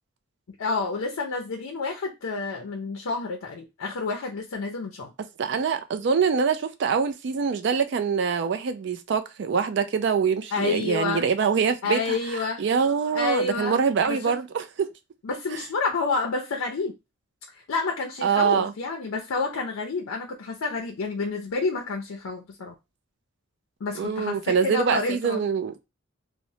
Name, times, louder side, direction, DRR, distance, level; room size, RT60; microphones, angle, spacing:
voice 1, 0.6-5.1 10.5-11.3 11.8-12.6 13.1-13.8 14.1-14.3 15.2-16.9 17.5-22.7 23.8-25.4, left 3 dB, 85° left, 0.5 m, -29 dB
voice 2, 5.4-14.9 15.5-15.6 18.2-18.7 24.0-25.7, right 6 dB, 55° right, 0.3 m, -24 dB
3.0 x 2.0 x 2.7 m
head